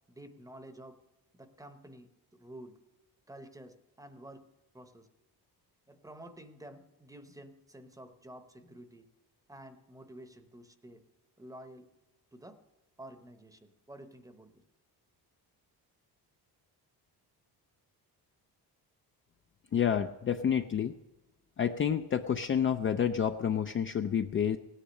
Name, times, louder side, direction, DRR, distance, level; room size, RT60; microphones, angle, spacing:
voice 1, 0.1-1.0 1.3-2.8 3.3-4.4 4.7-5.1 5.9-9.1 9.5-11.0 11.4-11.8 12.3-12.6 13.0-14.6, right 1 dB, 10° right, 9 dB, 0.8 m, -50 dB
voice 2, 19.7-20.9 21.6-24.6, left 8 dB, 35° left, 7 dB, 0.4 m, -29 dB
17.0 x 10.0 x 6.5 m, 1.0 s
cardioid pair, 170°, 39 cm